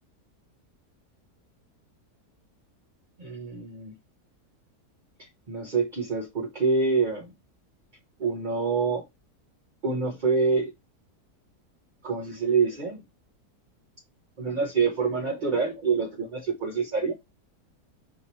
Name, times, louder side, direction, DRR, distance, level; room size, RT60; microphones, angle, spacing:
voice 1, 3.2-3.9 5.2-7.3 8.2-9.0 9.8-10.7 12.0-13.0 14.4-17.1, right 4 dB, 40° right, 0.7 m, -26 dB
5.8 x 2.8 x 3.0 m
omnidirectional pair, 1.7 m